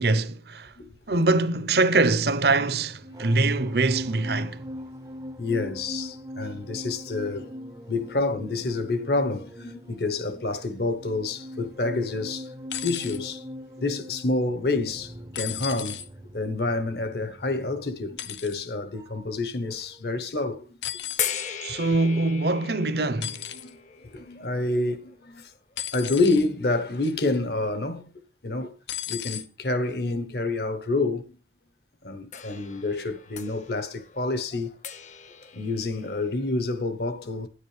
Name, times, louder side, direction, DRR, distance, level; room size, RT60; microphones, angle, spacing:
voice 1, 0.0-0.7 1.1-4.6 21.6-23.4, right 3 dB, 65° right, 0.8 m, -23 dB
sound 1, 2.8-19.4 19.7-20.0, equal, 20° right, 0.5 m, -41 dB
voice 2, 5.4-7.5 7.9-12.5 12.8-13.4 13.8-16.0 16.3-20.7 23.6-23.7 24.1-25.5 25.9-28.1 28.4-28.7 29.1-31.3 32.0-34.7 35.5-37.5, left 2 dB, 65° left, 1.1 m, -28 dB
sound 2, 12.7-13.2 15.3-16.1 18.2-18.6 20.8-21.5 23.2-23.7 25.8-26.5 27.0-27.3 28.9-29.5 30.5-30.6, left 11 dB, 85° left, 0.8 m, -35 dB
sound 3, 21.2-26.2 27.1-27.2 32.3-36.6, left 8 dB, 45° left, 0.7 m, -38 dB
10.0 x 9.8 x 3.3 m
head